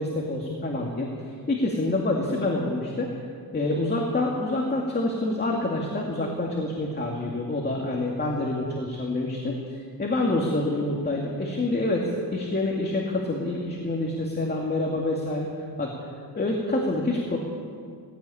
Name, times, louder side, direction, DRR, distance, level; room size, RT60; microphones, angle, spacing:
voice 1, 0.0-3.2 3.5-15.5 15.8-15.9 16.3-17.4, left 2 dB, 25° left, -1 dB, 2.3 m, -27 dB
19.0 x 16.0 x 8.7 m, 2.2 s
wide cardioid pair, 145°, 38 cm